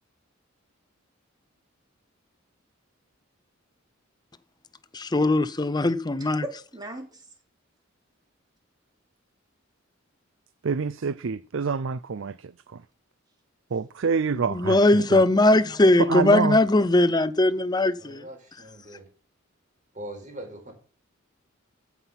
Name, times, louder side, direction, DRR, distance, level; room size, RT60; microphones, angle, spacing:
voice 1, 4.9-6.4 14.5-18.2, left 2 dB, 20° left, 0.6 m, -20 dB
voice 2, 6.1-7.2, right 2 dB, 20° right, 3.2 m, -38 dB
voice 3, 10.6-12.8 13.7-15.2 16.0-16.6, right 5 dB, 65° right, 0.5 m, -27 dB
voice 4, 18.0-19.1 19.9-20.7, right 1 dB, 40° right, 5.0 m, -41 dB
15.0 x 6.0 x 5.8 m
head